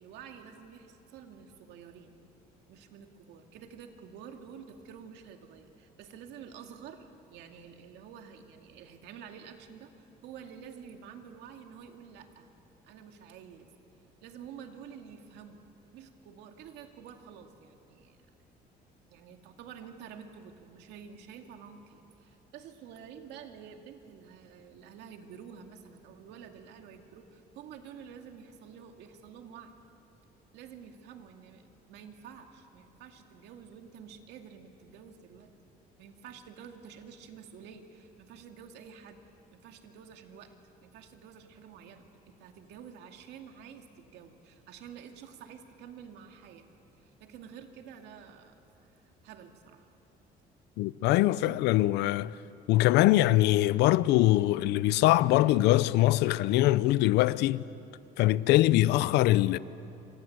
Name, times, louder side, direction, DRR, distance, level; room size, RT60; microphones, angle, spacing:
voice 1, 0.0-2.2 2.7-12.5 12.8-13.7 14.2-15.6 15.9-18.2 19.1-29.7 30.5-35.5 36.0-39.2 39.5-40.5 40.8-46.7 47.0-48.6 48.8-49.9, right 7 dB, 85° right, 2.4 m, -49 dB
voice 2, 50.8-52.3 52.7-57.6 58.2-59.6, left 16 dB, 90° left, 0.7 m, -23 dB
28.0 x 26.0 x 8.0 m
cardioid pair, 110°, 17 cm